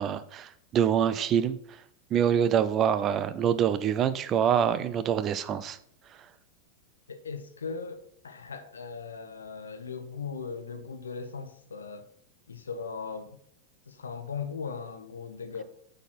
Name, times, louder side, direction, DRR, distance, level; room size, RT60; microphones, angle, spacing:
voice 1, 0.0-1.6 2.1-5.8, right 8 dB, 30° right, 0.6 m, -25 dB
voice 2, 7.1-12.1 12.5-13.3 13.9-15.6, left 5 dB, 70° left, 0.9 m, -38 dB
7.9 x 4.5 x 5.9 m
figure-of-eight pair, 90°, 0 cm